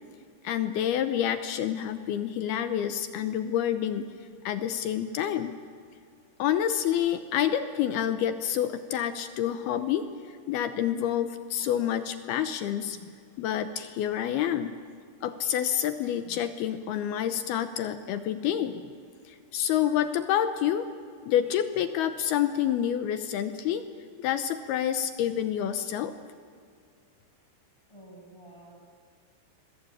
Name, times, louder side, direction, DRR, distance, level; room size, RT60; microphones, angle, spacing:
voice 1, 0.4-4.1 4.5-5.5 6.4-10.1 10.5-13.0 13.4-14.8 15.2-18.8 19.3-20.9 21.2-23.9 24.2-26.1, left 10 dB, 80° left, 10 dB, 2.4 m, -28 dB
voice 2, 27.9-28.9, right 1 dB, 5° left, -3 dB, 6.7 m, -51 dB
28.0 x 22.0 x 8.8 m, 2.2 s
omnidirectional pair, 5.4 m